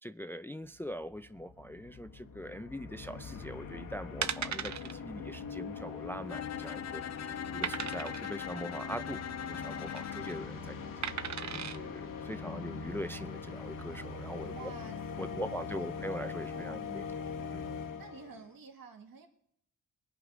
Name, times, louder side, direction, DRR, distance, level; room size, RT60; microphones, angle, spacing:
voice 1, 0.0-10.8 11.1-14.7 15.2-17.1 17.5-17.6, equal, 5° left, 0.4 m, -42 dB
sound 1, 0.8-0.9 1.0-18.5, left 5 dB, 70° left, 1.1 m, -42 dB
sound 2, 3.5-3.7 4.2-4.9 5.3-5.4 5.7-5.8 6.4-6.8 7.6-8.3 9.6-10.0 11.0-11.8 12.4-12.5, right 8 dB, 55° right, 0.7 m, -37 dB
Bowed string instrument, 6.3-10.5, left 8 dB, 50° left, 0.6 m, -40 dB
voice 2, 14.5-16.0 16.5-17.2 18.0-19.3, right 6 dB, 80° right, 1.9 m, -51 dB
22.5 x 7.8 x 5.0 m
cardioid pair, 75°, 34 cm